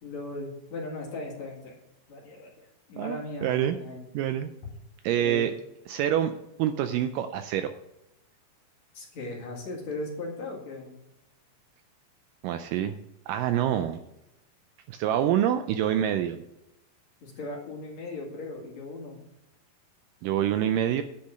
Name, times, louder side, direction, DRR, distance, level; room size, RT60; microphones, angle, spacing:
voice 1, 0.0-1.8 2.1-4.0 5.1-5.5 8.9-10.9 17.2-19.2, left 2 dB, 55° left, -2 dB, 3.0 m, -38 dB
voice 2, 3.0-3.8 4.1-4.5 5.0-5.5 5.9-6.3 6.6-7.8 12.4-13.0 13.3-14.0 14.9-16.4 20.2-21.0, right 10 dB, 80° right, 9 dB, 2.0 m, -26 dB
10.0 x 5.8 x 6.3 m, 0.88 s
omnidirectional pair, 4.2 m